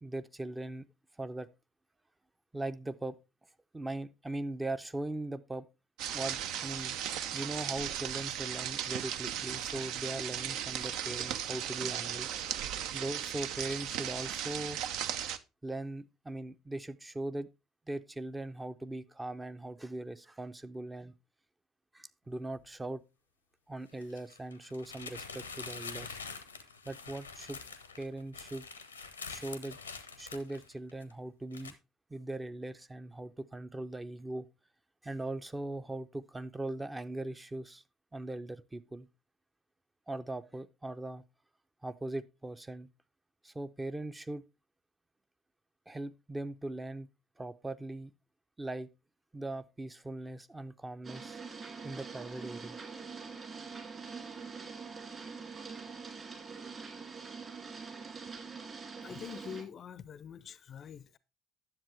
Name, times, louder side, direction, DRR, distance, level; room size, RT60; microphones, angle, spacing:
voice 1, 0.0-0.9 1.2-1.5 2.5-3.2 3.7-5.7 6.1-7.0 7.3-12.3 12.9-14.8 15.6-17.5 17.9-21.1 21.9-23.0 23.7-26.2 26.8-27.6 28.0-28.7 29.3-29.8 30.2-31.7 32.1-34.5 35.0-37.8 38.1-39.1 40.1-41.2 41.8-42.9 43.4-44.4 45.9-47.1 47.4-48.1 48.6-48.9 49.3-51.4 51.8-52.8, right 2 dB, 15° right, 0.6 m, -40 dB
sound 1, 6.0-15.4, right 10 dB, 55° right, 0.5 m, -36 dB
sound 2, 22.3-22.4 23.9-31.1 31.5-31.7, left 5 dB, 85° left, 0.7 m, -45 dB
sound 3, 51.0-59.6, right 5 dB, 35° right, 2.4 m, -44 dB
voice 2, 59.0-61.2, left 7 dB, 40° left, 0.5 m, -45 dB
10.5 x 7.3 x 3.3 m
figure-of-eight pair, 55°, 0 cm